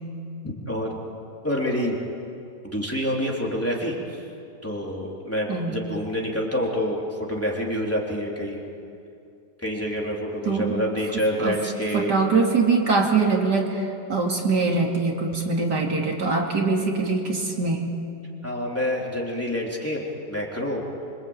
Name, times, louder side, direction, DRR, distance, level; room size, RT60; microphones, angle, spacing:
voice 1, 0.4-1.0 1.4-2.0 2.6-4.2 4.6-8.6 9.6-12.1 18.4-20.0 20.3-20.8, equal, 5° left, -3 dB, 3.6 m, -27 dB
voice 2, 10.4-10.8 11.4-11.6 11.9-17.9, right 4 dB, 65° right, 0 dB, 3.3 m, -23 dB
26.0 x 25.5 x 9.0 m, 2.6 s
omnidirectional pair, 1.9 m